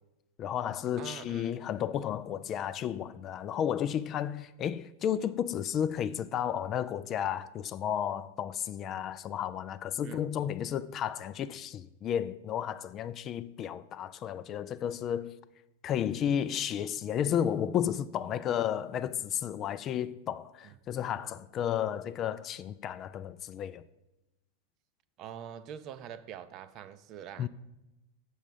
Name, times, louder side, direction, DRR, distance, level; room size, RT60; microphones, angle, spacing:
voice 1, 0.4-15.3 15.8-23.8 27.4-27.5, left 9 dB, 30° left, 0.4 m, -33 dB
voice 2, 1.0-1.6 10.0-10.2 20.6-20.8 25.2-27.5, right 9 dB, 35° right, 0.6 m, -44 dB
7.1 x 6.3 x 7.5 m
figure-of-eight pair, 90°, 0 cm